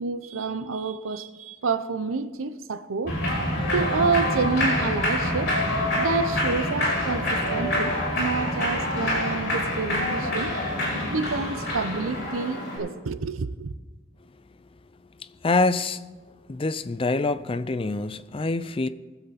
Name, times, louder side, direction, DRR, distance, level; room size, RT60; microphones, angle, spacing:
voice 1, 0.0-3.2 3.7-5.6 5.9-10.5 11.1-13.7, right 4 dB, 85° right, 0.6 m, -28 dB
Human voice / Clapping / Cheering, 3.1-12.8, left 1 dB, 50° left, 5.1 m, -27 dB
sound 1, 3.1-12.3, right 1 dB, 30° right, 1.3 m, -33 dB
voice 2, 15.4-16.0 16.5-18.9, left 3 dB, 25° left, 0.4 m, -25 dB
20.5 x 7.9 x 4.1 m
head